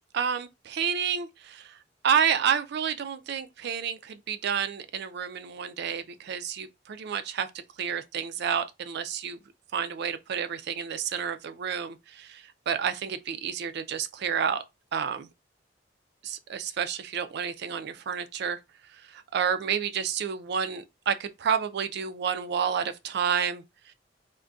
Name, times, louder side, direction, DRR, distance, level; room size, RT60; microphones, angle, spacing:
voice 1, 0.1-1.8 2.0-7.5 7.8-9.4 9.7-14.6 14.9-15.3 16.2-18.6 19.0-23.6, right 7 dB, 60° right, 0.4 m, -30 dB
2.5 x 2.2 x 3.4 m
head